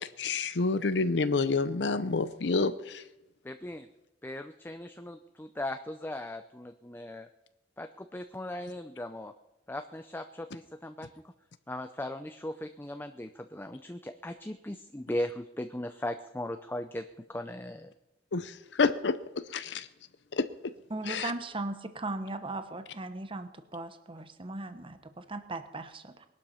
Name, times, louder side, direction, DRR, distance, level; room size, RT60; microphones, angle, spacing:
voice 1, 0.2-3.0 18.3-18.5 18.8-19.9 20.4-20.5 21.1-21.3, left 4 dB, 70° left, 12 dB, 0.7 m, -28 dB
voice 2, 3.4-3.9 4.2-7.3 7.8-9.3 9.7-11.1 11.7-17.9, left 1 dB, 10° left, 8 dB, 0.6 m, -38 dB
voice 3, 20.9-26.3, right 2 dB, 30° right, 9 dB, 1.0 m, -38 dB
20.5 x 12.0 x 5.7 m, 0.98 s
head